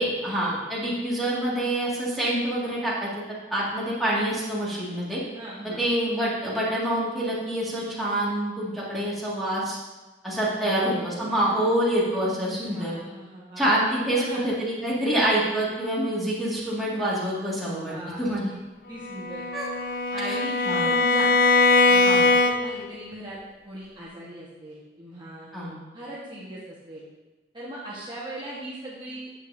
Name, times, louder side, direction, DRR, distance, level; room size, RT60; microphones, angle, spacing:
voice 1, 0.0-3.1 3.5-5.2 5.6-9.8 10.2-12.9 13.6-17.9 18.2-18.5 19.5-19.7 20.3-20.4 20.7-20.9 22.0-22.2 25.5-25.7, right 1 dB, ahead, -7 dB, 2.1 m, -26 dB
voice 2, 5.3-5.8 10.5-11.1 11.4-11.7 12.5-14.6 17.7-18.6 18.9-19.4 20.1-20.5 20.8-21.3 21.9-23.4 23.6-25.5 25.9-27.0 27.5-29.4, right 1 dB, 25° right, -7 dB, 1.3 m, -39 dB
Bowed string instrument, 19.0-22.9, left 3 dB, 55° left, 0.6 m, -21 dB
10.0 x 7.5 x 2.7 m, 1.2 s
head